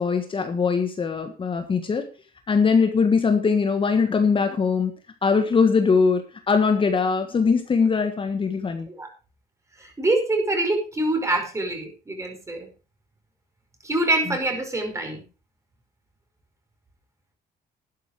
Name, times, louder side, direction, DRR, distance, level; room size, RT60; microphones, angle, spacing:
voice 1, 0.0-2.1 2.5-4.9 5.2-8.9, left 5 dB, 30° left, 6 dB, 1.6 m, -21 dB
voice 2, 9.8-12.7 13.8-15.2, right 2 dB, 15° right, 4 dB, 5.1 m, -25 dB
12.0 x 10.5 x 5.0 m, 0.35 s
cardioid pair, 110°, 17 cm